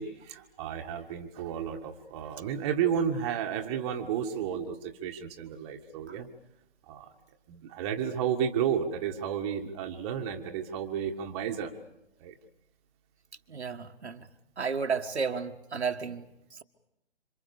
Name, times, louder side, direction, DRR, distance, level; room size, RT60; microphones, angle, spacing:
voice 1, 0.0-6.3 6.9-7.1 7.5-11.7 12.2-12.3, right 8 dB, 25° right, 3 dB, 1.8 m, -32 dB
voice 2, 13.5-14.3 14.6-16.6, right 5 dB, 75° right, 5 dB, 1.8 m, -33 dB
27.5 x 25.5 x 7.0 m, 0.85 s
figure-of-eight pair, 140°, 34 cm